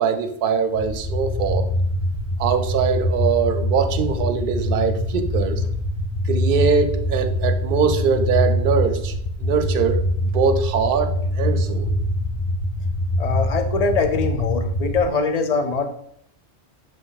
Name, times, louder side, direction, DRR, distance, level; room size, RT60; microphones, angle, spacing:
voice 1, 0.0-1.7 2.4-5.6 6.2-9.1 9.4-11.9, right 6 dB, 60° right, 9 dB, 0.7 m, -22 dB
sound 1, 0.7-15.0, left 1 dB, 85° left, 1.2 m, -24 dB
voice 2, 13.2-15.9, left 4 dB, 45° left, 6 dB, 0.6 m, -22 dB
7.7 x 3.1 x 4.0 m, 0.68 s
omnidirectional pair, 1.2 m